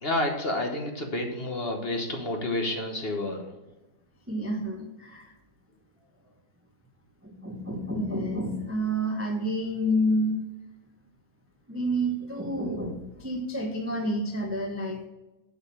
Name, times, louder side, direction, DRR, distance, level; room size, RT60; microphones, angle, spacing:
voice 1, 0.0-3.5, left 1 dB, 35° left, 3 dB, 1.1 m, -29 dB
voice 2, 4.3-5.3 7.2-10.4 11.7-15.1, equal, 20° right, 3 dB, 0.3 m, -29 dB
8.1 x 5.3 x 6.8 m, 1.0 s
omnidirectional pair, 2.2 m